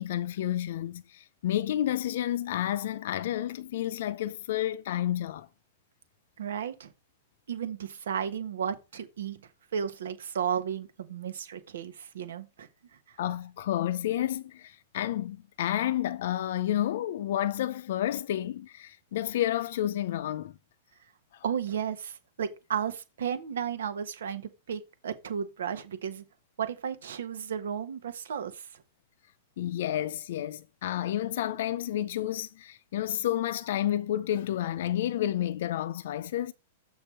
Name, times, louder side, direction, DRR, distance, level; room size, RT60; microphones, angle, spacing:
voice 1, 0.0-5.5 13.2-20.5 29.6-36.5, left 12 dB, 70° left, 0.5 m, -30 dB
voice 2, 6.4-6.9 7.5-9.4 9.7-12.7 13.1-13.2 21.4-26.2 26.6-28.8, right 8 dB, 80° right, 1.4 m, -34 dB
6.9 x 5.4 x 4.3 m
hypercardioid pair, 130°, 0 cm